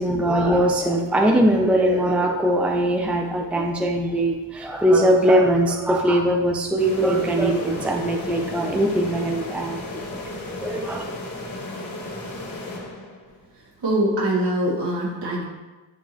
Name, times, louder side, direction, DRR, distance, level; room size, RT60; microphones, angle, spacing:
voice 1, 0.0-10.2 10.6-11.0, right 1 dB, 5° right, 1 dB, 0.6 m, -21 dB
sound 1, 6.8-13.4, left 2 dB, 45° left, 1.9 m, -34 dB
voice 2, 13.8-15.4, right 1 dB, 65° right, -4 dB, 2.1 m, -23 dB
10.0 x 3.8 x 3.1 m, 1.2 s
cardioid pair, 95°, 44 cm